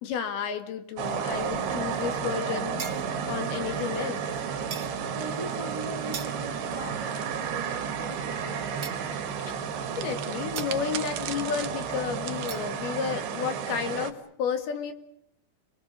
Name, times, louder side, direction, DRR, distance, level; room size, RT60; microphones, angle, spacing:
voice 1, 0.0-4.4 9.5-9.6 10.0-14.9, left 7 dB, 75° left, 8 dB, 4.0 m, -32 dB
sound 1, 1.0-14.1, right 7 dB, 80° right, 4.0 m, -32 dB
sound 2, 1.2-3.2 4.2-8.0 9.9-12.6, right 11 dB, 65° right, 2.4 m, -43 dB
sound 3, 2.8-3.4 4.7-5.0 6.1-6.7 8.8-9.3 10.6-10.9 12.5-12.7, right 6 dB, 45° right, 1.6 m, -40 dB
voice 2, 5.1-9.0, right 1 dB, 15° right, 6 dB, 1.0 m, -40 dB
29.5 x 23.0 x 6.8 m, 0.70 s
omnidirectional pair, 4.6 m